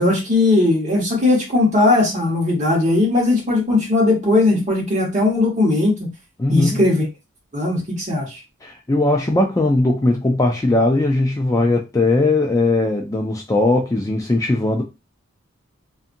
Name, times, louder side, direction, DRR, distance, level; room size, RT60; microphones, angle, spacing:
voice 1, 0.0-6.1 6.5-7.0 7.5-8.4, left 2 dB, 35° right, 1.2 m, -18 dB
voice 2, 6.4-6.8 8.6-14.8, left 2 dB, 15° left, 0.3 m, -19 dB
2.6 x 2.6 x 2.5 m
head